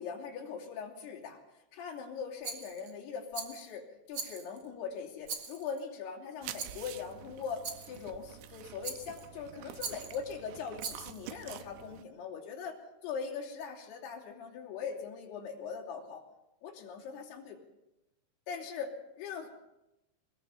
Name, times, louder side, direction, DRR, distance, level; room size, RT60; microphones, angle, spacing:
voice 1, 0.0-16.2 16.6-17.6 18.5-19.5, left 6 dB, 55° left, -1 dB, 4.7 m, -41 dB
Rattle, 2.4-2.9 3.3-3.7 4.1-4.7 5.2-5.8 6.6-6.9 7.6-8.0 8.8-9.3 9.8-10.2 10.8-11.2, right 5 dB, 60° right, 1.6 m, -41 dB
sound 1, 6.4-12.0, right 12 dB, 80° right, 2.6 m, -48 dB
22.5 x 20.5 x 5.6 m, 0.95 s
omnidirectional pair, 5.7 m